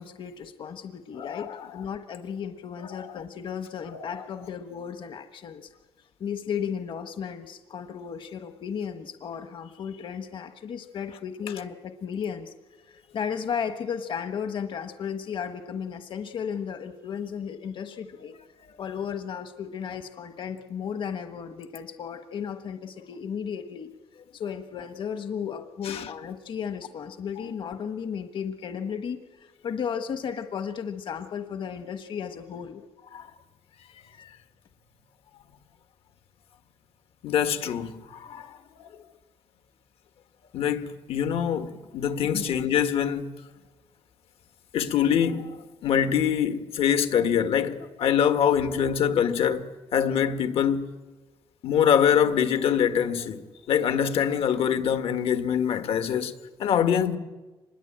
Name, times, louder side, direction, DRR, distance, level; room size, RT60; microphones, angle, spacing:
voice 1, 0.0-5.7 6.2-12.5 12.8-18.4 18.8-23.9 24.3-32.8 42.3-42.4, left 7 dB, 60° left, 1.2 m, -34 dB
voice 2, 1.1-1.9 2.8-3.2 3.8-4.3 11.5-11.6 25.8-26.1 27.4-27.5 33.1-33.3 37.2-38.9 40.5-43.3 44.7-50.9 51.6-53.4 53.7-57.2, left 8 dB, 85° left, 1.8 m, -25 dB
25.5 x 21.0 x 8.9 m
cardioid pair, 125°, 9 cm